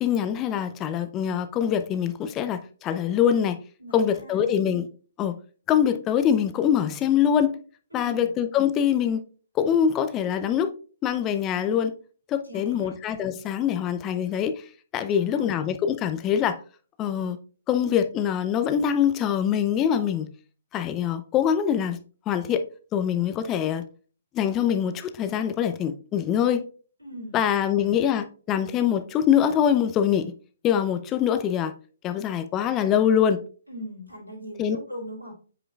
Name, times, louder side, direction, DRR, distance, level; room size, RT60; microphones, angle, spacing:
voice 1, 0.0-3.6 3.9-4.9 5.2-5.4 5.7-7.6 7.9-9.2 9.6-10.7 11.0-11.9 12.3-14.5 14.9-16.6 17.0-17.4 17.7-20.3 20.7-22.0 22.3-22.6 22.9-23.8 24.3-26.6 27.3-30.3 30.6-31.7 32.0-33.4 34.6-34.8, left 9 dB, 20° left, 0.6 m, -24 dB
voice 2, 3.8-4.5 7.9-8.3 12.4-12.9 15.1-15.5 27.0-27.9 33.7-35.3, equal, 85° right, 3.1 m, -40 dB
8.6 x 5.0 x 2.4 m
figure-of-eight pair, 125°, 0 cm